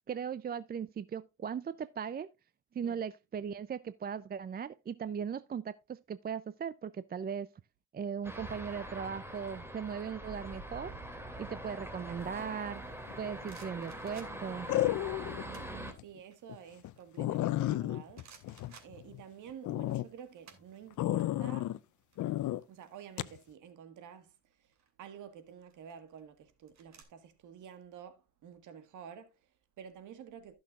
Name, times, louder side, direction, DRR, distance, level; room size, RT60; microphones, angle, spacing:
voice 1, 0.1-2.3 2.7-7.5 7.9-10.9 11.4-12.8 13.2-14.7, right 7 dB, 30° right, 0.5 m, -38 dB
sound 1, 8.2-15.9, right 1 dB, 10° right, 2.6 m, -43 dB
sound 2, 13.0-14.6 15.3-15.8 16.2-17.8 18.1-19.5 19.8-21.2 21.5-21.7 22.0-23.5 24.5-24.9 25.6-27.0, right 6 dB, 65° right, 2.7 m, -58 dB
sound 3, 13.1-13.5 14.7-15.5 15.9-16.0 16.5-16.6 16.8-16.9 17.2-19.2 19.6-20.1 21.0-21.8 22.2-22.6 23.2-23.4, left 15 dB, 75° left, 0.6 m, -32 dB
voice 2, 16.0-21.8 22.7-30.6, right 8 dB, 80° right, 1.7 m, -51 dB
16.0 x 6.3 x 2.5 m
cardioid pair, 90°, 30 cm